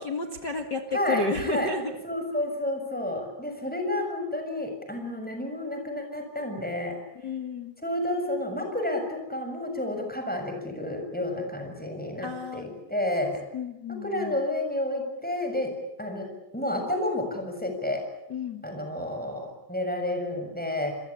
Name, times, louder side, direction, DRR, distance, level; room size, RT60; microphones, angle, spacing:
voice 1, 0.0-2.0 7.1-7.8 12.2-12.6 13.5-14.4 18.3-18.6, left 3 dB, 55° left, 4 dB, 1.2 m, -32 dB
voice 2, 0.9-1.7 2.0-7.0 7.8-13.4 13.9-15.7 16.0-18.0 18.6-20.9, left 1 dB, ahead, 4 dB, 6.3 m, -30 dB
29.0 x 22.5 x 8.6 m, 0.86 s
omnidirectional pair, 5.0 m